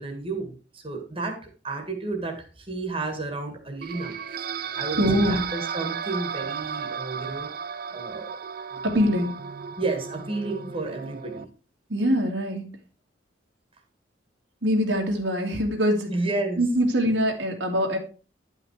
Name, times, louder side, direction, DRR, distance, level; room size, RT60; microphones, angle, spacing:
voice 1, 0.0-4.5 4.8-7.5 7.9-8.4 8.7-8.9 9.8-11.5 16.1-16.6, right 3 dB, 30° right, 4 dB, 1.8 m, -32 dB
sound 1, 3.8-11.4, right 7 dB, 55° right, 0.5 m, -34 dB
voice 2, 5.0-5.4 8.8-9.4 11.9-12.7 14.6-16.1 16.6-18.0, equal, 80° right, 1 dB, 2.2 m, -23 dB
10.0 x 5.7 x 4.7 m, 0.36 s
head